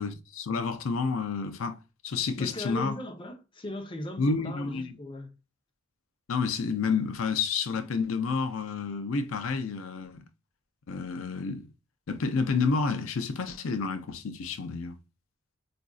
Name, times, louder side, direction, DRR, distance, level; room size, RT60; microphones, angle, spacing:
voice 1, 0.0-3.0 4.2-4.9 6.3-10.3 10.9-11.7 12.1-15.0, left 4 dB, 90° left, 0.5 m, -30 dB
voice 2, 2.4-5.3, left 1 dB, 25° left, 0.7 m, -39 dB
4.9 x 2.5 x 2.3 m
head